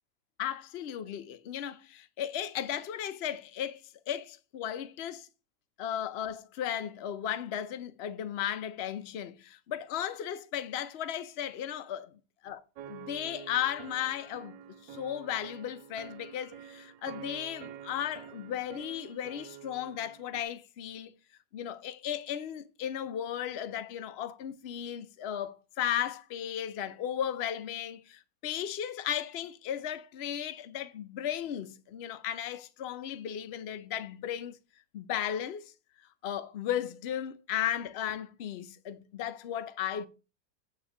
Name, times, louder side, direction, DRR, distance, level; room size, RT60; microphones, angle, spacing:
voice 1, 0.4-5.3 5.8-12.1 12.4-12.6 12.9-14.6 14.8-21.1 21.5-34.6 34.9-35.7 36.2-40.1, left 10 dB, 75° left, 0.5 m, -35 dB
sound 1, 12.8-20.4, right 9 dB, 90° right, 1.3 m, -48 dB
9.1 x 3.4 x 6.8 m
omnidirectional pair, 1.9 m